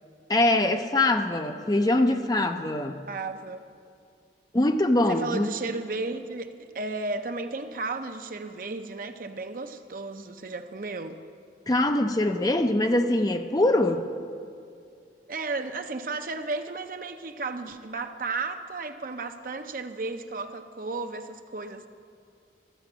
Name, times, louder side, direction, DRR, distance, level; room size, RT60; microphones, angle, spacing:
voice 1, 0.3-3.0 4.5-5.6 11.7-14.1, left 1 dB, 20° left, 6 dB, 0.5 m, -23 dB
voice 2, 3.1-3.6 5.1-11.2 15.3-21.9, right 3 dB, 50° right, 7 dB, 0.6 m, -34 dB
13.5 x 7.6 x 6.1 m, 2.4 s
head